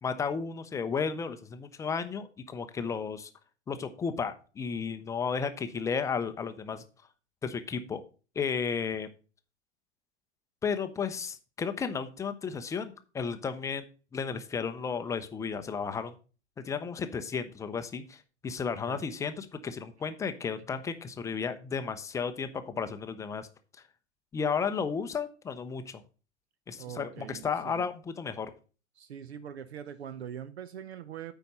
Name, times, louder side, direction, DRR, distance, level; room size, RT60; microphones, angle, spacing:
voice 1, 0.0-3.3 3.7-6.8 7.4-8.0 8.4-9.1 10.6-13.8 14.1-16.1 16.6-23.5 24.3-26.0 26.7-28.5, left 6 dB, 10° left, 10 dB, 0.5 m, -33 dB
voice 2, 26.8-27.8 28.9-31.3, right 9 dB, 65° right, 13 dB, 0.7 m, -43 dB
9.3 x 4.4 x 5.3 m, 0.36 s
figure-of-eight pair, 105°, 34 cm